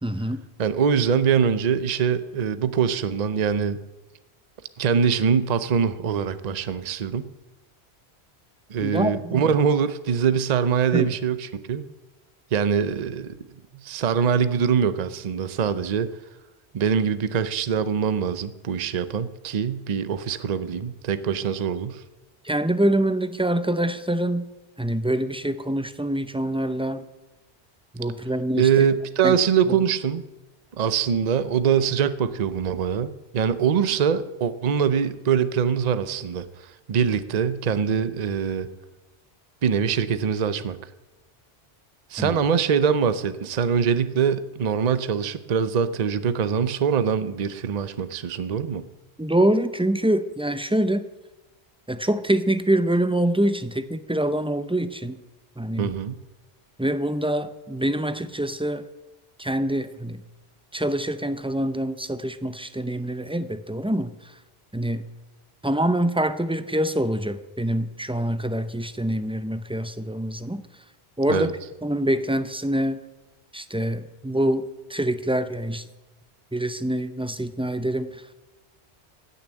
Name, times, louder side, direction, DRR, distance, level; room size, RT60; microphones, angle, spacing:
voice 1, 0.0-0.4 8.8-9.4 10.9-11.1 22.4-24.4 24.8-27.0 27.9-28.7 29.2-29.4 42.2-42.4 49.2-51.1 51.9-55.2 55.6-55.9 56.8-58.8 59.4-60.2 60.7-64.1 64.7-65.1 65.6-70.6 71.2-71.6 71.8-73.0 73.5-75.9 76.5-78.2, right 1 dB, 10° right, 11 dB, 0.3 m, -25 dB
voice 2, 0.6-3.8 4.8-7.3 8.7-11.8 12.5-13.3 13.8-16.1 16.7-22.0 28.6-30.2 30.7-38.7 39.6-40.8 42.1-48.8 55.8-56.2 71.3-71.5, right 7 dB, 45° right, 13 dB, 0.7 m, -23 dB
15.5 x 7.0 x 8.9 m, 1.1 s
omnidirectional pair, 1.1 m